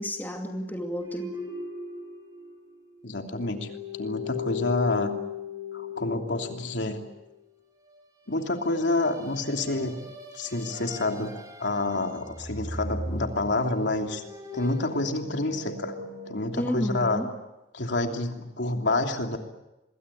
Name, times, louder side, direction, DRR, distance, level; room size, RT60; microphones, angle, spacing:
voice 1, 0.0-1.4 16.6-17.3, equal, 10° left, 2 dB, 2.6 m, -31 dB
sound 1, 1.0-2.9 3.2-7.1 8.7-11.9 12.2-16.5, left 4 dB, 20° right, 5.3 m, -38 dB
voice 2, 3.0-3.7 4.0-5.1 5.7-7.0 8.3-10.0 10.3-14.2 14.5-15.9 16.3-17.2 17.7-19.4, left 2 dB, 80° left, 3 dB, 3.0 m, -28 dB
26.5 x 22.0 x 8.6 m, 0.98 s
head